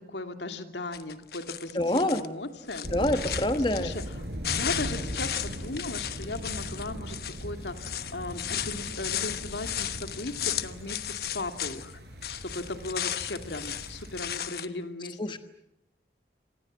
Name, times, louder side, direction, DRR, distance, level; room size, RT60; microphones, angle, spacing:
voice 1, 0.0-2.9 3.7-3.9 4.5-7.2 7.4-11.9 12.3-15.4, left 2 dB, 80° left, 7 dB, 2.6 m, -37 dB
sound 1, 0.9-2.3 2.6-4.1 4.4-11.9 12.2-14.7, left 10 dB, 60° left, 1.1 m, -35 dB
voice 2, 1.7-2.2 2.9-3.9 15.2-15.4, left 1 dB, 25° left, 9 dB, 1.2 m, -26 dB
sound 2, 2.8-14.4, equal, 70° right, 4.8 m, -39 dB
28.0 x 26.5 x 7.6 m, 0.78 s
head